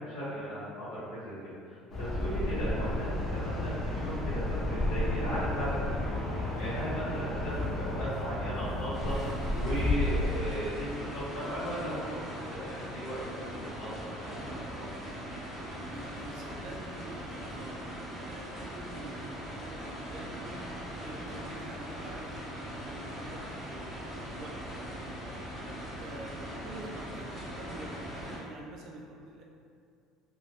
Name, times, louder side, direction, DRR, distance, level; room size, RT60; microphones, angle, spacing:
voice 1, 0.0-9.2 9.5-13.2 13.5-14.9 25.8-26.0, equal, 75° left, -11 dB, 1.0 m, -37 dB
sound 1, 1.9-10.3, left 1 dB, 45° left, 0.6 m, -32 dB
sound 2, 8.9-28.4, equal, 5° right, 0.7 m, -41 dB
voice 2, 15.6-20.6 21.0-25.2 26.0-29.4, right 1 dB, 55° right, -2 dB, 0.4 m, -47 dB
2.2 x 2.0 x 2.9 m, 2.4 s
cardioid pair, 150°, 0 cm